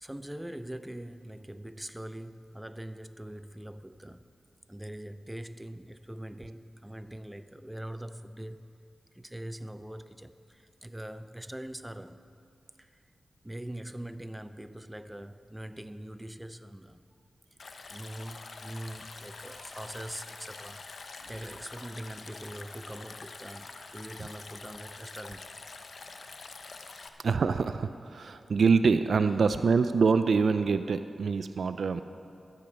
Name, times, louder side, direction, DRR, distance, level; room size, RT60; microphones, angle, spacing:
voice 1, 0.0-4.3 4.7-8.7 9.1-12.2 12.8-13.0 13.4-17.1 17.9-20.8 21.3-25.5 26.9-27.1, right 1 dB, 10° right, 0.5 m, -42 dB
Stream, 17.6-27.1, left 4 dB, 65° left, 0.7 m, -46 dB
voice 2, 27.2-32.0, right 5 dB, 75° right, 0.3 m, -25 dB
12.0 x 8.5 x 5.8 m
cardioid pair, 50°, 0 cm